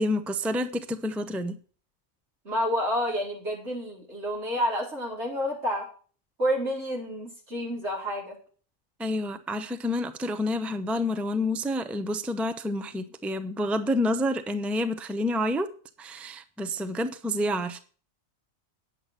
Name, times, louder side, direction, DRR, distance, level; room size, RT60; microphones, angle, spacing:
voice 1, 0.0-1.6 9.0-15.7 16.0-17.8, left 1 dB, ahead, 0.6 m, -28 dB
voice 2, 2.4-5.9 6.4-8.4, equal, 70° right, 4.6 m, -29 dB
9.8 x 7.7 x 6.8 m
omnidirectional pair, 1.2 m